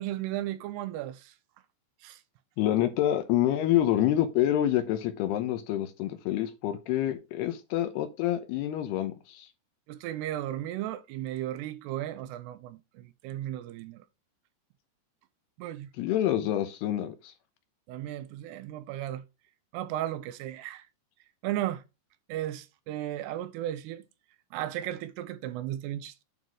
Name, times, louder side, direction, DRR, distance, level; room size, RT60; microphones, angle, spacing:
voice 1, 0.0-1.4 2.0-2.2 9.9-14.1 15.6-15.9 17.9-19.2 19.7-20.9 21.4-21.8 22.3-24.0 24.5-26.2, right 13 dB, 80° right, 2.6 m, -35 dB
voice 2, 2.6-9.5 16.0-17.3, left 12 dB, 80° left, 2.7 m, -27 dB
9.2 x 4.1 x 4.7 m
omnidirectional pair, 5.0 m